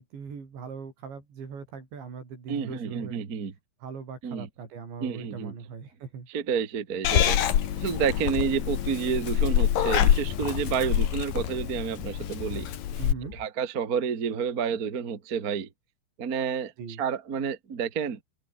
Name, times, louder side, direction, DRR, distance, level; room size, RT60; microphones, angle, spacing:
voice 1, 0.0-3.2 3.8-6.3 13.0-13.3 16.8-17.0, right 6 dB, 65° right, 8.0 m, -40 dB
voice 2, 2.5-3.5 4.2-4.5 5.0-5.5 6.3-7.4 7.8-12.7 13.3-15.7 16.2-16.7 17.0-18.2, right 7 dB, 85° right, 0.8 m, -29 dB
Purr / Meow, 7.0-13.1, left 10 dB, 55° left, 3.1 m, -26 dB
sound 1, 10.8-13.5, left 5 dB, 80° left, 10.5 m, -48 dB
omnidirectional pair, 5.5 m